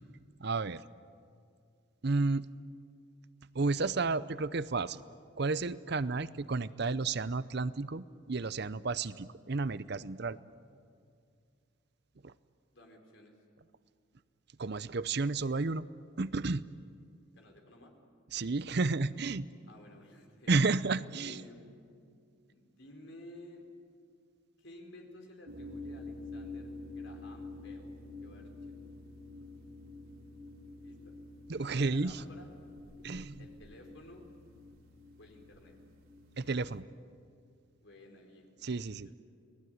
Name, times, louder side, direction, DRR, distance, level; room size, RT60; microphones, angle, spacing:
voice 1, 0.4-0.8 2.0-2.5 3.5-5.0 5.4-10.4 12.2-12.3 14.6-15.9 16.2-16.6 18.3-19.4 20.5-21.4 31.5-32.2 33.0-33.4 36.4-36.8 38.6-39.1, right 3 dB, 55° right, 16 dB, 0.6 m, -32 dB
voice 2, 12.7-13.3 17.3-17.9 19.6-20.6 21.2-21.7 22.4-23.6 24.6-27.9 28.2-28.5 30.8-31.1 31.8-32.5 33.4-34.2 35.2-35.7 37.8-39.2, left 1 dB, 65° left, 3 dB, 4.6 m, -54 dB
sound 1, 25.5-36.8, left 2 dB, 85° right, 3.6 m, -48 dB
30.0 x 20.0 x 9.5 m, 2.3 s
head